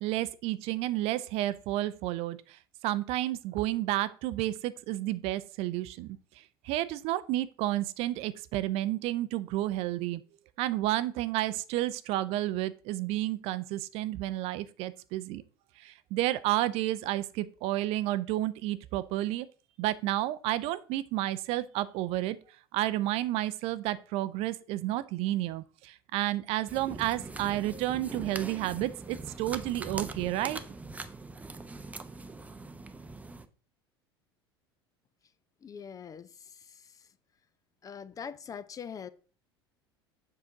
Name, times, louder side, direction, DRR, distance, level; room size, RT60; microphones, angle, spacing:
voice 1, 0.0-6.2 6.6-10.2 10.6-15.4 15.8-19.5 19.8-22.4 22.7-30.6, right 15 dB, 50° right, 0.5 m, -31 dB
sound 1, 26.7-33.5, right 3 dB, 10° right, 0.7 m, -42 dB
voice 2, 35.6-36.9 37.8-39.1, left 7 dB, 25° left, 0.6 m, -43 dB
7.3 x 5.9 x 3.8 m
figure-of-eight pair, 75°, 13 cm